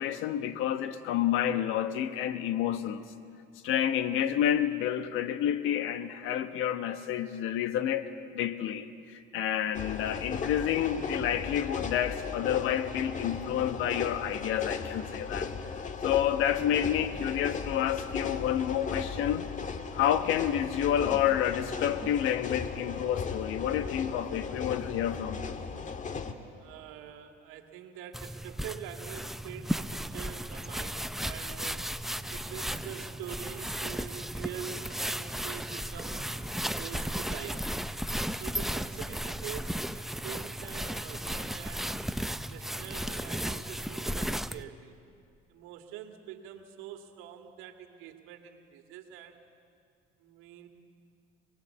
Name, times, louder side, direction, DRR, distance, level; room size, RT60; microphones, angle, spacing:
voice 1, 0.0-3.0 3.6-15.5 16.0-19.5 19.9-25.5, left 10 dB, 75° left, 11 dB, 1.3 m, -29 dB
sound 1, 9.7-26.3, left 5 dB, 35° left, 1.7 m, -37 dB
voice 2, 26.6-31.9 32.3-37.8 38.4-42.0 42.4-45.0 45.5-49.4 50.2-50.7, right 10 dB, 85° right, 5 dB, 2.2 m, -45 dB
sound 2, 28.1-44.6, equal, ahead, 0.6 m, -35 dB
sound 3, 32.0-44.5, right 7 dB, 45° right, 2.8 m, -55 dB
25.5 x 20.5 x 8.3 m, 2.4 s
supercardioid pair, 95°, 21 cm